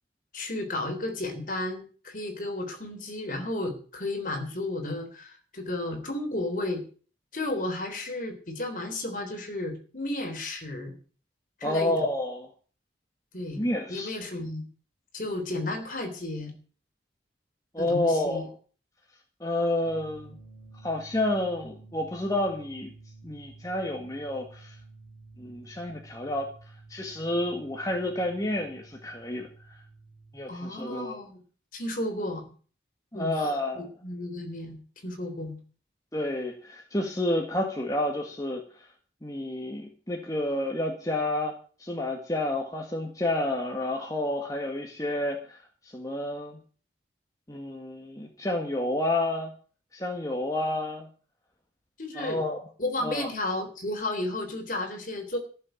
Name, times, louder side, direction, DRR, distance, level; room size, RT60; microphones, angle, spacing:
voice 1, 0.3-6.8 7.3-10.9 11.6-11.9 13.3-14.6 15.1-16.5 17.8-18.4 30.5-31.4 31.7-32.5 33.1-35.6 52.0-52.5 52.8-55.4, left 1 dB, 45° left, 5 dB, 3.7 m, -33 dB
voice 2, 11.6-12.5 13.6-14.2 17.7-18.5 19.4-20.4 20.8-22.9 23.2-24.7 25.4-26.5 26.9-29.5 30.3-31.2 33.1-33.9 36.1-38.9 39.2-41.5 41.8-45.6 45.9-46.6 47.5-49.5 49.9-51.1 52.2-52.6 53.0-53.3, left 1 dB, 20° left, 1 dB, 1.9 m, -30 dB
sound 1, 19.8-30.4, right 3 dB, 40° right, 4.5 m, -51 dB
14.5 x 7.3 x 9.2 m, 0.41 s
head